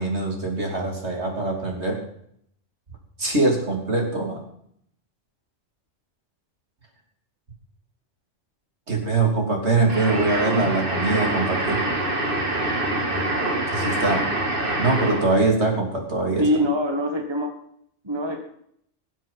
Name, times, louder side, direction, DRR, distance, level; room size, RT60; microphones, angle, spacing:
voice 1, 0.0-2.0 3.2-4.4 8.9-11.8 13.7-14.2 14.8-16.4, right 3 dB, 65° right, 1 dB, 3.6 m, -23 dB
sound 1, 9.9-15.4, right 1 dB, 45° right, 2.2 m, -25 dB
voice 2, 16.4-17.5 18.0-18.4, equal, 20° right, 3 dB, 1.7 m, -23 dB
19.5 x 7.7 x 5.7 m, 0.68 s
omnidirectional pair, 1.2 m